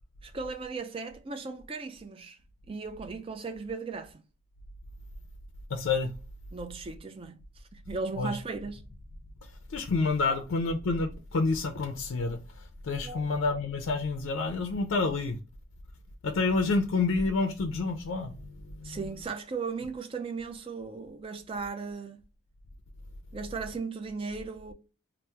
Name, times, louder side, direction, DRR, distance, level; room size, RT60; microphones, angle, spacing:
voice 1, 0.2-2.4 2.7-4.2 6.5-8.8 10.3-10.4 13.0-13.3 18.8-22.2 23.3-24.7, right 4 dB, 25° right, 0.3 m, -37 dB
voice 2, 5.7-6.1 8.2-8.3 9.7-12.4 12.8-15.4 16.2-19.0, left 3 dB, 70° left, 0.4 m, -28 dB
2.8 x 2.0 x 3.2 m
head